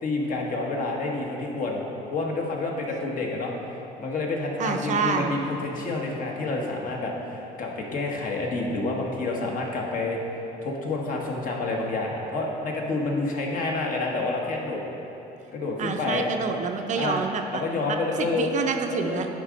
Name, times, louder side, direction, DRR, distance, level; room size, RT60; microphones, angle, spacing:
voice 1, 0.0-1.8 2.1-3.5 4.0-10.2 10.6-14.8 15.5-16.3 16.9-17.2 17.5-18.5 18.9-19.2, left 3 dB, 55° left, -1 dB, 1.2 m, -28 dB
voice 2, 4.6-5.4 15.8-17.6 17.9-19.3, right 5 dB, 45° right, 5 dB, 0.5 m, -27 dB
9.7 x 3.7 x 5.1 m, 2.9 s
cardioid pair, 110°, 17 cm